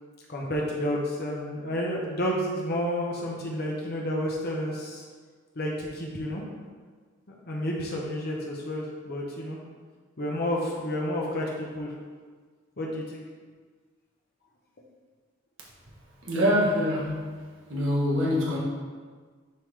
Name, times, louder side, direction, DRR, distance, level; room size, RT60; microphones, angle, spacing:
voice 1, 0.3-5.0 5.6-6.4 7.3-9.6 10.2-11.9 12.8-13.2, equal, 50° left, -3 dB, 1.0 m, -30 dB
voice 2, 16.2-17.2 17.7-18.6, equal, 65° right, -4 dB, 1.5 m, -24 dB
10.5 x 3.8 x 3.3 m, 1.5 s
head